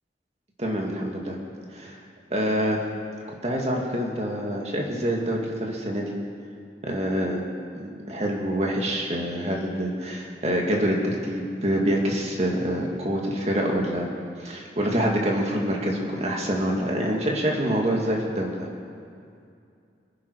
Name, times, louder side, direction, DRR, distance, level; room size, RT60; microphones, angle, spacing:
voice 1, 0.6-1.4 1.7-2.0 2.3-2.8 3.4-6.1 6.8-7.4 7.8-14.1 14.4-18.7, equal, 35° right, -1 dB, 2.3 m, -26 dB
25.0 x 10.5 x 4.8 m, 2.4 s
head